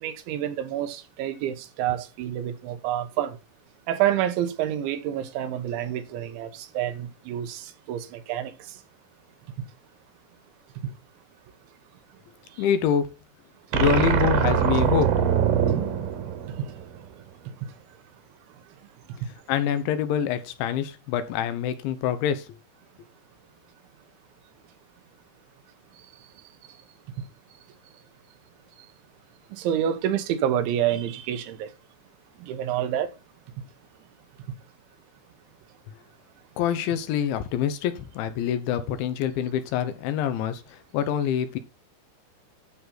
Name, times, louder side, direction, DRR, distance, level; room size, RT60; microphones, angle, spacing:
voice 1, 0.0-3.4 3.9-8.5 29.5-31.7 32.4-33.1, right 11 dB, 90° right, 3.4 m, -28 dB
voice 2, 12.6-13.1 13.7-15.2 19.5-22.5 36.6-41.6, left 9 dB, 85° left, 3.4 m, -26 dB
sound 1, 13.7-17.1, right 8 dB, 70° right, 2.9 m, -23 dB
12.5 x 5.9 x 4.2 m
omnidirectional pair, 5.2 m